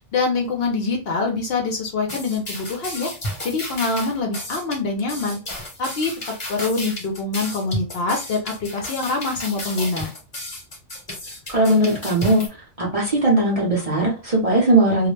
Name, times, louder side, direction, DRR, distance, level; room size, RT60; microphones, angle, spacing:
voice 1, 0.1-3.1 3.4-5.4 5.8-6.1 6.5-10.1, left 3 dB, 60° left, 2 dB, 0.8 m, -24 dB
sound 1, 2.1-12.5, left 1 dB, 30° left, 0.8 m, -33 dB
voice 2, 11.5-12.4 12.8-15.1, right 1 dB, 35° right, -3 dB, 0.7 m, -18 dB
2.3 x 2.1 x 3.1 m, 0.31 s
omnidirectional pair, 1.2 m